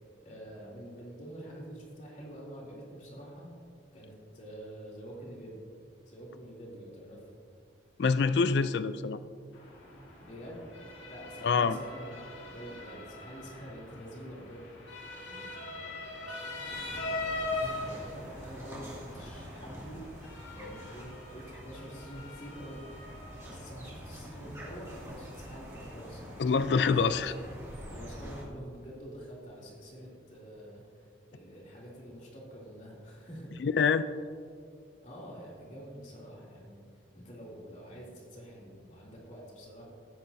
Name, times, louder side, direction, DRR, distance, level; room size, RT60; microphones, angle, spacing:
voice 1, 0.2-3.5 3.9-5.6 6.1-7.2 10.2-10.7 11.1-12.1 12.4-14.6 15.2-16.4 17.7-20.0 20.5-22.8 23.4-27.3 27.9-33.5 35.0-36.8 37.1-39.8, equal, 40° left, -5 dB, 2.9 m, -47 dB
voice 2, 8.0-9.2 11.4-11.8 26.4-27.3 33.6-34.1, left 5 dB, 60° left, 13 dB, 0.4 m, -26 dB
Motor vehicle (road) / Siren, 9.5-26.9, left 2 dB, 85° left, 2.0 m, -42 dB
sound 1, 16.7-28.4, equal, 15° right, 2.4 m, -46 dB
17.0 x 8.5 x 2.7 m, 2.2 s
head